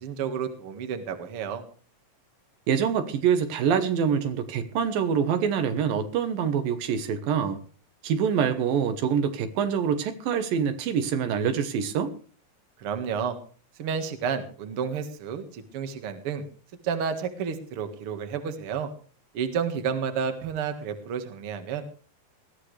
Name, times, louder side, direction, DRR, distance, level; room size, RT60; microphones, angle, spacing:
voice 1, 0.0-1.6 12.8-13.4 13.8-16.4 16.8-18.9 19.3-21.8, right 7 dB, 45° right, 7 dB, 2.2 m, -31 dB
voice 2, 2.7-7.6 8.0-12.1, right 7 dB, 75° right, 9 dB, 2.9 m, -25 dB
20.0 x 14.5 x 3.3 m, 0.39 s
omnidirectional pair, 4.1 m